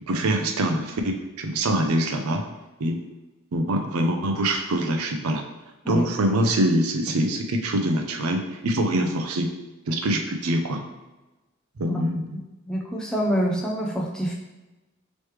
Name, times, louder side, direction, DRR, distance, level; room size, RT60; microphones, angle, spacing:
voice 1, 0.1-2.4 2.8-3.0 3.5-5.4 5.9-9.5 9.9-10.8 11.8-12.2, right 1 dB, 90° right, 4 dB, 0.5 m, -24 dB
voice 2, 12.3-14.3, equal, 5° left, -3 dB, 0.5 m, -26 dB
3.2 x 3.1 x 3.2 m, 1.1 s
head